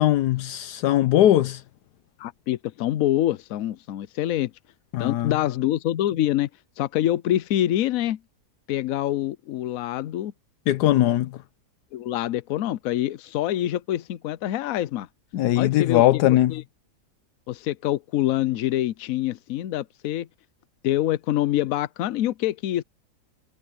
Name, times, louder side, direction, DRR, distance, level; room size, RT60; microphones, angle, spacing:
voice 1, 0.0-1.6 4.9-5.3 10.7-11.4 15.3-16.6, left 13 dB, 80° left, 1.2 m, -20 dB
voice 2, 2.2-4.5 5.0-6.5 6.8-8.2 8.7-10.3 11.9-15.1 15.6-16.2 16.5-16.6 17.5-20.3 20.8-22.8, left 13 dB, 65° left, 1.0 m, -25 dB
omnidirectional pair, 1.7 m